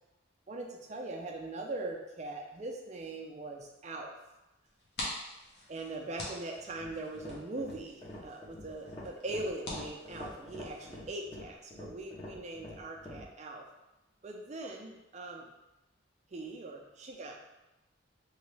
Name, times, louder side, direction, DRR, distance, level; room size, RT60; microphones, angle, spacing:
voice 1, 0.5-4.1 5.7-13.7 14.2-15.5 16.3-17.4, right 2 dB, 35° right, 1 dB, 0.4 m, -41 dB
sound 1, 4.6-10.9, left 1 dB, 60° left, 0.9 m, -45 dB
sound 2, 6.7-13.3, left 1 dB, 25° left, 0.7 m, -46 dB
3.0 x 2.8 x 3.2 m, 0.97 s
head